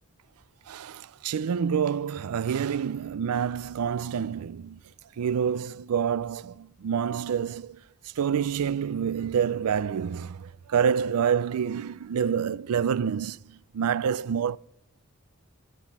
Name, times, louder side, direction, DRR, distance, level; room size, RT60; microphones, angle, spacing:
voice 1, 0.7-4.8 5.2-7.8 8.2-14.6, right 7 dB, 90° right, 0.4 m, -27 dB
13.5 x 7.8 x 5.4 m
head